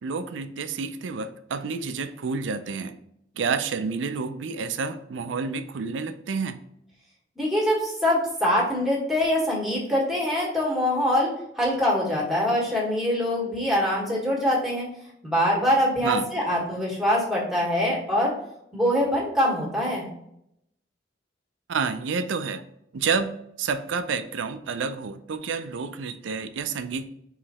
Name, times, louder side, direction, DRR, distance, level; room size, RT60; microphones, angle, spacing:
voice 1, 0.0-3.0 3.4-6.6 16.0-16.3 21.7-22.6 22.9-27.0, right 5 dB, 90° right, 10 dB, 0.4 m, -29 dB
voice 2, 7.3-11.3 11.6-14.9 15.2-18.3 18.7-20.1, left 1 dB, ahead, -4 dB, 1.5 m, -24 dB
4.7 x 3.2 x 2.9 m, 0.74 s
head